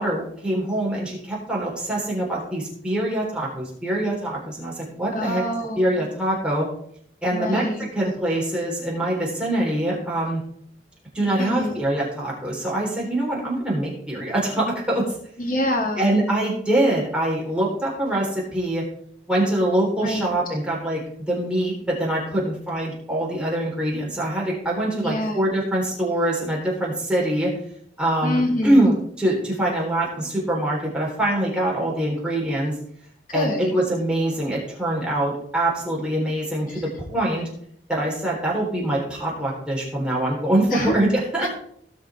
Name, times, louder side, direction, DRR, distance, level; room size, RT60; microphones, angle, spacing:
voice 1, 0.0-5.4 5.8-6.7 7.2-10.4 11.1-15.1 16.0-18.8 19.3-27.5 28.0-32.8 33.3-37.5 37.9-41.5, right 1 dB, 5° right, -4 dB, 3.7 m, -24 dB
voice 2, 5.1-5.9 7.3-7.9 11.4-11.7 15.4-16.2 20.0-20.3 25.0-25.4 28.2-28.9 33.3-33.8 36.7-36.8 40.7-41.0 41.4-41.5, left 1 dB, 50° left, 3 dB, 1.9 m, -26 dB
18.0 x 6.4 x 3.5 m, 0.67 s
head